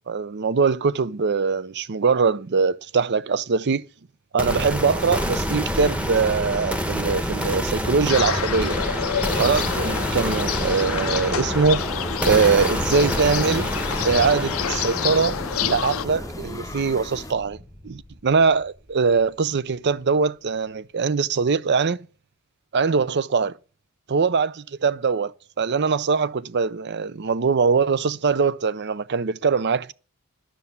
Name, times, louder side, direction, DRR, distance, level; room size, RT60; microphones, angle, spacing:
voice 1, 0.0-3.8 4.3-8.8 9.4-11.8 12.2-13.7 14.0-17.6 17.8-22.0 22.7-23.5 24.1-25.3 25.6-29.9, right 5 dB, 50° right, 0.6 m, -22 dB
sound 1, 4.4-18.3, equal, 5° right, 1.0 m, -28 dB
sound 2, 8.1-16.1, left 9 dB, 65° left, 0.5 m, -28 dB
sound 3, 11.8-17.3, left 2 dB, 15° left, 0.7 m, -39 dB
11.5 x 6.8 x 8.4 m
head